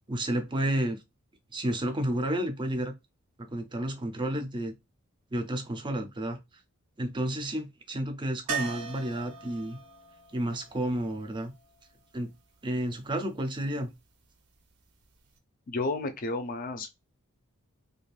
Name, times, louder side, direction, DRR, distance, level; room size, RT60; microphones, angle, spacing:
voice 1, 0.1-1.0 1.5-2.9 3.4-4.7 5.3-6.4 7.0-9.8 10.3-11.5 12.1-12.3 12.6-13.9, right 1 dB, 20° right, 0.4 m, -31 dB
sound 1, 8.5-12.4 15.0-15.1 15.4-15.5, right 6 dB, 75° right, 0.6 m, -39 dB
voice 2, 15.7-16.9, left 3 dB, 40° left, 0.4 m, -32 dB
2.4 x 2.2 x 3.2 m
head